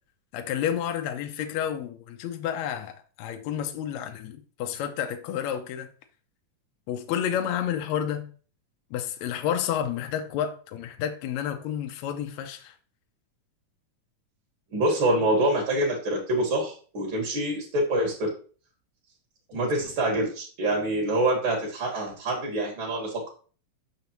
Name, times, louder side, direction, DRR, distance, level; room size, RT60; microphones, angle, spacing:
voice 1, 0.3-5.9 6.9-8.3 8.9-12.7, left 9 dB, 75° left, 1.7 m, -30 dB
voice 2, 14.7-18.3 19.5-23.3, right 1 dB, 45° right, 2.0 m, -26 dB
6.7 x 5.6 x 2.9 m
omnidirectional pair, 3.8 m